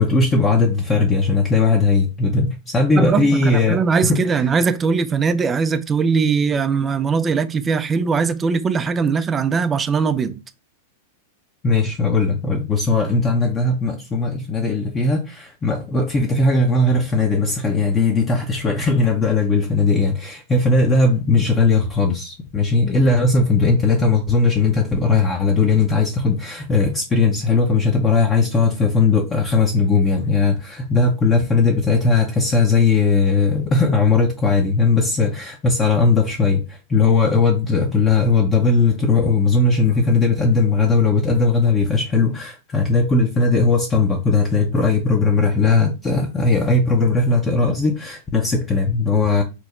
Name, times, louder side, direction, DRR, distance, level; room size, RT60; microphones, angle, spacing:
voice 1, 0.0-4.4 11.6-49.4, left 3 dB, 20° left, 0.6 m, -18 dB
voice 2, 2.9-10.4, right 5 dB, 20° right, 0.4 m, -20 dB
3.0 x 2.1 x 3.6 m
hypercardioid pair, 110°, 0 cm